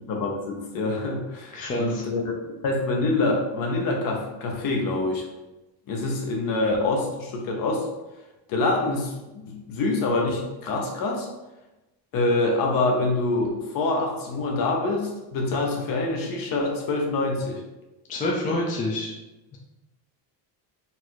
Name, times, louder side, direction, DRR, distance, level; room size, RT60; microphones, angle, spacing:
voice 1, 0.0-2.2 2.6-5.3 5.9-7.9 8.5-11.3 12.1-17.6, left 2 dB, 50° left, 1 dB, 1.0 m, -25 dB
voice 2, 1.5-2.0 18.1-19.1, left 1 dB, 20° left, -2 dB, 0.3 m, -27 dB
4.1 x 2.6 x 4.5 m, 1.0 s
cardioid pair, 170°, 44 cm